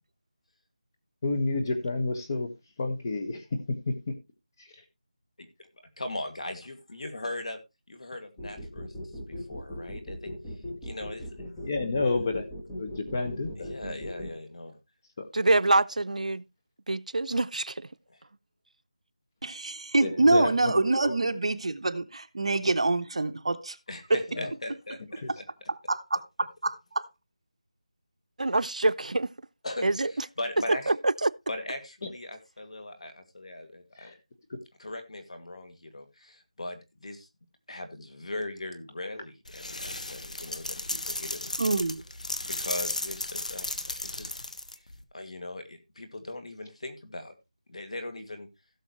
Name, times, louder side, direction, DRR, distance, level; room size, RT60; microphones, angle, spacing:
voice 1, 1.2-2.5 2.8-3.8 4.1-4.2 4.6-4.8 11.6-12.5 12.8-13.7 15.2-15.3 20.0-20.7 21.0-21.2 24.4-24.5 25.2-25.3 34.0-34.2, left 3 dB, 30° left, 1.6 m, -30 dB
voice 2, 6.0-7.6 7.9-8.9 9.3-10.3 10.8-11.4 13.6-14.7 18.1-18.2 23.9-25.4 29.6-30.9 31.5-34.1 34.8-37.3 37.7-41.7 42.5-43.7 44.0-44.3 45.1-47.3 47.7-48.5, left 2 dB, 60° left, 2.3 m, -39 dB
sound 1, 8.4-14.3, equal, 5° left, 1.4 m, -39 dB
voice 3, 15.3-16.4 16.9-17.9 28.4-29.3 29.8-30.1 30.9-31.3, right 2 dB, 85° right, 0.5 m, -25 dB
voice 4, 19.4-23.8 24.1-24.2 25.9-27.0 41.6-42.0, right 2 dB, 50° right, 1.0 m, -26 dB
sound 2, 39.5-45.0, left 2 dB, 85° left, 1.4 m, -35 dB
16.5 x 6.4 x 3.1 m
figure-of-eight pair, 175°, 4 cm